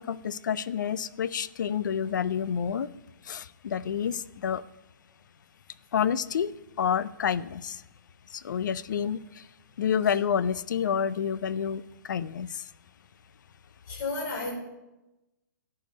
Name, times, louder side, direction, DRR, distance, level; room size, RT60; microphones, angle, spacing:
voice 1, 0.0-2.9 3.3-4.6 5.9-6.5 6.8-7.7 8.4-9.2 9.8-11.8 12.1-12.5, left 8 dB, 65° left, 18 dB, 0.5 m, -28 dB
voice 2, 13.9-14.5, left 3 dB, 50° left, -2 dB, 3.3 m, -33 dB
11.0 x 4.8 x 8.1 m, 1.0 s
hypercardioid pair, 135°, 11 cm